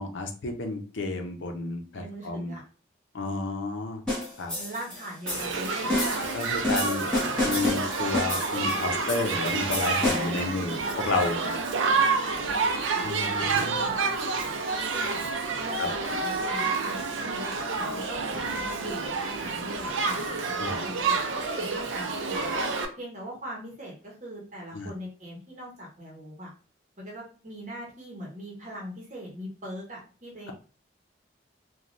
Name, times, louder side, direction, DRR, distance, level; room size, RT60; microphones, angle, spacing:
voice 1, 0.0-2.5 3.1-4.0 4.4-4.5 6.3-7.1 7.4-11.4 13.0-13.9 15.8-15.9 20.6-20.8 24.7-24.9, left 3 dB, 80° left, 4 dB, 0.6 m, -31 dB
voice 2, 1.9-2.6 4.5-5.9 10.0-14.1 14.5-15.2 15.6-22.5 23.0-26.5 27.0-30.5, equal, 40° right, -3 dB, 0.8 m, -40 dB
sound 1, 4.1-10.4, left 1 dB, 5° left, 0.9 m, -31 dB
Shout / Human group actions, 5.3-22.9, right 4 dB, 85° right, 0.5 m, -29 dB
3.1 x 2.2 x 2.5 m, 0.38 s
head